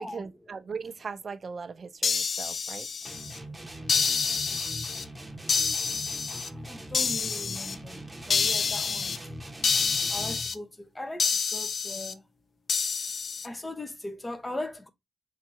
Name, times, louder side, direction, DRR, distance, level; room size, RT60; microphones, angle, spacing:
voice 1, 0.0-2.9, right 5 dB, 55° right, 0.5 m, -39 dB
sound 1, 2.0-3.4 3.9-5.0 5.5-6.5 6.9-7.7 8.3-9.2 9.6-10.5 11.2-12.1 12.7-13.5, left 5 dB, 60° left, 0.4 m, -28 dB
sound 2, 3.1-10.6, right 1 dB, 15° right, 1.0 m, -42 dB
voice 2, 6.2-9.3 10.1-12.3 13.0-13.1 13.4-14.9, left 1 dB, 20° left, 0.8 m, -39 dB
3.2 x 2.8 x 4.5 m
cardioid pair, 60°, 0 cm